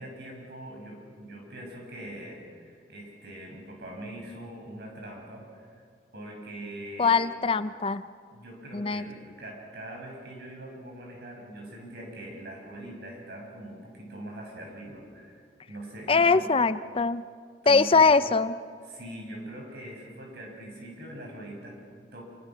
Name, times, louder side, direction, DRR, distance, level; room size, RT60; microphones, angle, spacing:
voice 1, 0.0-5.8 6.1-7.3 8.3-16.5 17.6-18.1 18.8-22.3, right 1 dB, 65° right, 0 dB, 7.4 m, -42 dB
voice 2, 7.0-8.0 8.7-9.1 16.1-17.2 17.7-18.5, left 4 dB, 30° left, 13 dB, 0.6 m, -22 dB
28.0 x 24.5 x 6.4 m, 2.1 s
head